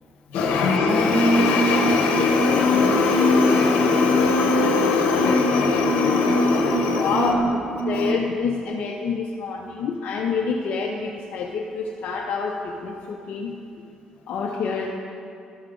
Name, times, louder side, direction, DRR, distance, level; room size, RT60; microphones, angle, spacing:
voice 1, 0.3-8.1, left 3 dB, 85° left, 2 dB, 1.1 m, -19 dB
voice 2, 7.0-7.5 7.8-13.6 14.3-14.9, left 5 dB, 65° left, 0 dB, 0.7 m, -27 dB
12.0 x 6.4 x 3.8 m, 2.6 s
cardioid pair, 85°, 2 cm